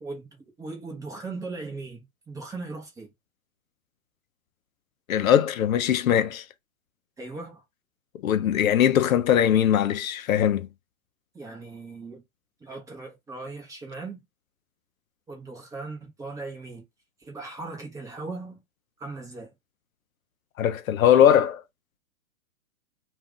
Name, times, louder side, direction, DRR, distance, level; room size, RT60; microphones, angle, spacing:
voice 1, 0.0-3.1 7.2-7.6 11.3-12.2 12.6-14.2 15.3-16.8 17.2-18.6 19.0-19.5, right 3 dB, 10° right, 0.7 m, -38 dB
voice 2, 5.1-6.4 8.2-10.7 20.6-21.6, left 10 dB, 70° left, 0.5 m, -20 dB
2.4 x 2.3 x 3.6 m
hypercardioid pair, 120°, 43 cm